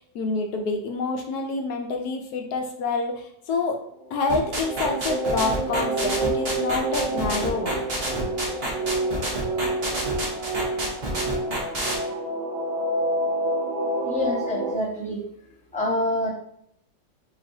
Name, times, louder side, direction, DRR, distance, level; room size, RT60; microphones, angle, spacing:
voice 1, 0.0-3.8 4.1-7.8, left 3 dB, 65° left, 3 dB, 1.2 m, -27 dB
sound 1, 4.1-14.7, right 2 dB, 70° right, 1.6 m, -28 dB
sound 2, 4.3-11.9, right 1 dB, 40° right, 1.2 m, -28 dB
voice 2, 14.0-15.2 15.7-16.3, left 1 dB, 5° left, -4 dB, 0.7 m, -26 dB
6.0 x 3.2 x 2.7 m, 0.71 s
omnidirectional pair, 2.0 m